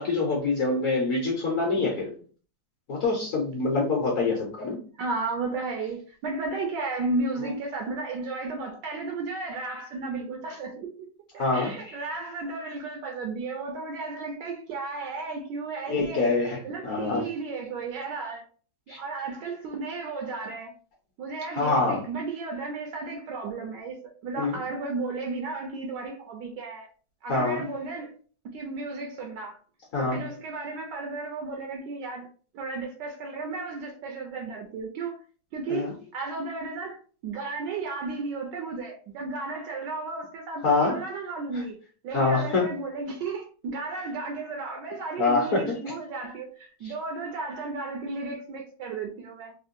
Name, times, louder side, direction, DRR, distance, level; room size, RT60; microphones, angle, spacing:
voice 1, 0.0-2.1 2.9-4.8 7.4-7.5 11.4-12.0 15.9-17.2 18.9-19.0 21.5-22.0 24.4-24.6 27.3-27.6 29.9-30.2 35.7-35.9 40.6-41.0 41.5-41.6 42.1-42.7 45.2-45.8 46.8-46.9, left 3 dB, 55° left, 1.0 m, -25 dB
voice 2, 5.0-10.9 11.3-16.3 16.6-18.5 18.9-20.7 21.2-26.9 27.2-28.1 28.5-29.6 30.0-32.3 32.5-35.2 35.5-41.8 42.0-49.6, right 3 dB, 75° right, 1.2 m, -34 dB
3.5 x 2.2 x 2.5 m
omnidirectional pair, 2.0 m